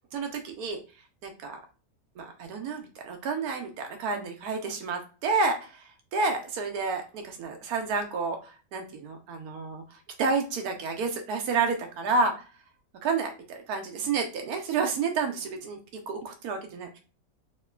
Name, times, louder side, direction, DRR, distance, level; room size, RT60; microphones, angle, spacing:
voice 1, 0.1-0.8 1.2-1.6 2.2-5.8 6.1-9.8 10.2-12.5 13.0-15.8 16.1-17.0, right 4 dB, 80° right, 5 dB, 1.2 m, -30 dB
3.1 x 2.8 x 2.2 m, 0.34 s
omnidirectional pair, 1.6 m